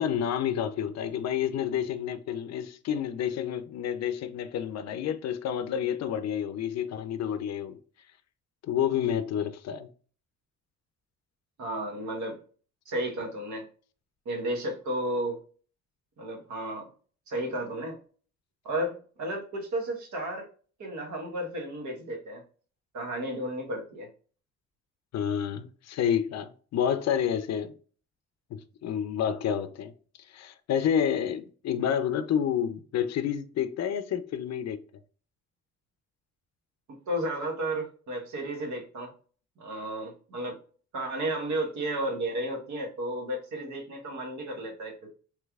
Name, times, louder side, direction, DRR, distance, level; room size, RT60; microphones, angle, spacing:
voice 1, 0.0-7.8 8.6-9.9 25.1-27.7 28.5-29.9 30.3-34.8, left 9 dB, 60° left, 0.5 m, -29 dB
voice 2, 11.6-12.4 12.9-13.7 14.2-15.4 16.2-16.9 17.3-18.0 18.6-20.5 20.8-22.4 22.9-24.1 36.9-39.1 39.6-40.6 40.9-45.1, right 1 dB, 70° right, 1.2 m, -33 dB
3.3 x 3.2 x 2.3 m
cardioid pair, 90°, 30 cm